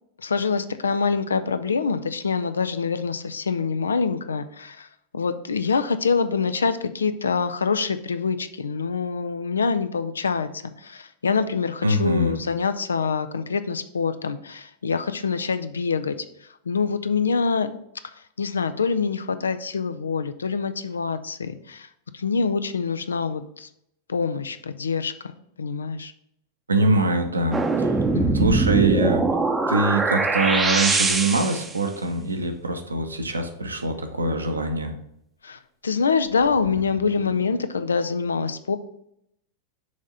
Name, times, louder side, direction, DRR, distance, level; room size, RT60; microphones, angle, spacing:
voice 1, 0.2-4.9 5.1-16.1 16.4-17.7 18.4-21.9 22.1-23.7 24.1-25.3 25.6-26.1 28.1-28.5 35.4-38.8, left 5 dB, 70° left, 11 dB, 0.4 m, -25 dB
voice 2, 11.8-12.4 26.7-27.9 28.3-29.3 29.7-34.9, right 2 dB, 80° right, 5 dB, 0.9 m, -23 dB
sound 1, 27.5-31.8 36.7-37.3, right 3 dB, 10° right, 0.7 m, -22 dB
6.3 x 3.6 x 5.4 m, 0.76 s
figure-of-eight pair, 90°, 0 cm